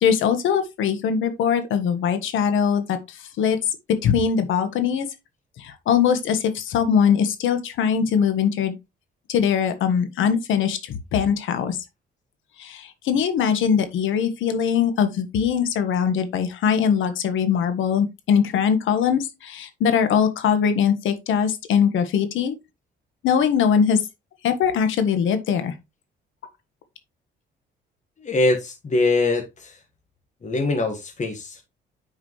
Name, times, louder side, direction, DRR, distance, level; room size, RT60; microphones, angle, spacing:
voice 1, 0.0-3.6 4.0-5.1 5.6-8.8 9.3-11.8 12.6-22.6 23.2-24.0 24.4-25.7, left 7 dB, 80° left, 1.5 m, -21 dB
voice 2, 28.2-29.8 30.4-31.6, left 2 dB, 35° left, 1.7 m, -23 dB
9.4 x 4.9 x 3.2 m
cardioid pair, 90°, 20 cm